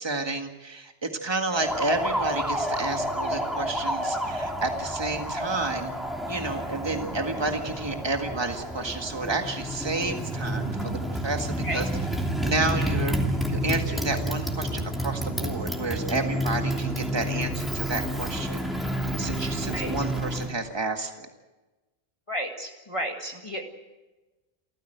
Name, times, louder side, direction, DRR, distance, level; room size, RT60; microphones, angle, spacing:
voice 1, 0.0-5.9 6.3-11.9 12.4-13.1 13.5-21.3, right 3 dB, 25° right, 4 dB, 1.9 m, -31 dB
Motorcycle, 1.5-20.5, equal, ahead, 3.0 m, -30 dB
voice 2, 22.3-23.6, equal, 30° left, 2 dB, 1.9 m, -32 dB
28.5 x 15.0 x 8.0 m, 1.1 s
omnidirectional pair, 1.0 m